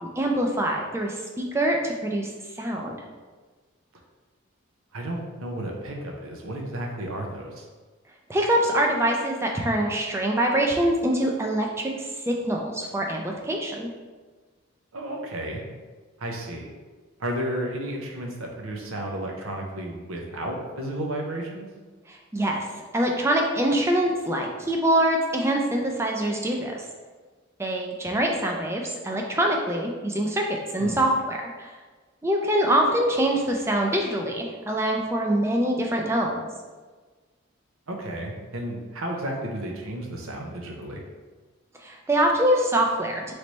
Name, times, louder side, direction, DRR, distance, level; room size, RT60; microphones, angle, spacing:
voice 1, 0.0-2.3 2.6-3.0 8.3-13.9 22.1-22.6 22.9-26.8 27.6-31.7 32.2-36.4 41.8-43.3, right 1 dB, 10° right, 1 dB, 0.4 m, -24 dB
voice 2, 4.9-7.7 14.9-15.6 16.2-16.7 17.2-21.7 30.8-31.0 37.9-41.0, right 1 dB, 90° right, 1 dB, 0.7 m, -32 dB
3.2 x 3.1 x 4.0 m, 1.4 s
head